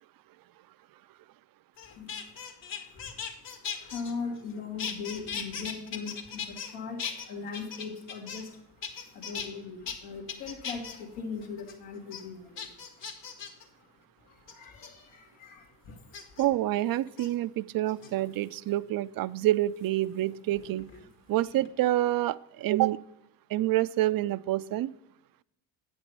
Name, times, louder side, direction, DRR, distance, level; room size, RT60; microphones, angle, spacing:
sound 1, 1.8-4.5 4.8-6.7 7.0-8.5 8.8-9.5 9.9-10.0 10.3-11.0 11.4-11.7 12.1-12.2 12.6-13.6 14.5-14.9 16.1-16.5 17.1-17.3 17.9-18.4 19.9-21.0 21.3-21.7, left 7 dB, 60° left, 1.9 m, -38 dB
voice 1, 1.9-8.6 9.0-13.9 14.2-16.4, left 5 dB, 80° left, 1 dB, 2.3 m, -41 dB
voice 2, 16.4-20.9 21.3-23.0 23.5-24.9, right 15 dB, 45° right, 17 dB, 0.5 m, -27 dB
8.9 x 6.2 x 5.5 m, 0.81 s
supercardioid pair, 70°, 49 cm